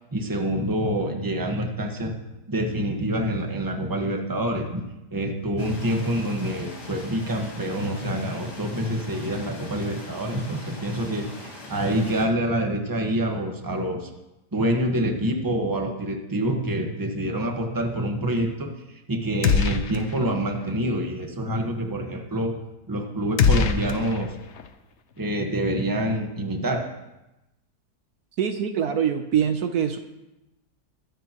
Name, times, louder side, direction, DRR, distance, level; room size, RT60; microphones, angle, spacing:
voice 1, 0.1-2.1 2.5-4.8 5.1-11.3 11.7-14.1 14.5-18.7 19.1-22.5 22.9-24.3 25.2-26.8, right 1 dB, 15° right, 3 dB, 1.3 m, -26 dB
sound 1, 5.6-12.3, left 2 dB, 85° left, 3.0 m, -42 dB
sound 2, 19.4-20.3 20.6-20.7 23.4-24.7, left 6 dB, 55° left, 0.9 m, -23 dB
voice 2, 28.4-30.0, right 8 dB, 70° right, 7 dB, 1.3 m, -24 dB
21.5 x 10.5 x 3.0 m, 0.96 s
omnidirectional pair, 1.7 m